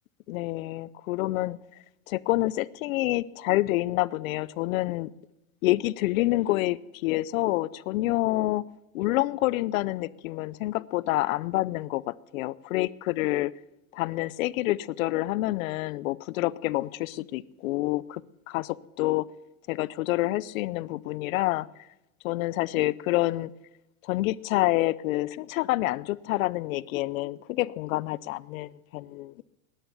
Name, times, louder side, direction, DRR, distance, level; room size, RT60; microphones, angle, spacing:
voice 1, 0.3-1.6 2.1-5.1 5.6-8.7 8.9-13.5 13.9-18.2 18.5-19.3 19.7-21.7 22.2-23.5 24.0-29.4, left 18 dB, 65° left, 21 dB, 0.7 m, -27 dB
19.0 x 10.0 x 7.0 m, 0.96 s
supercardioid pair, 155°, 44 cm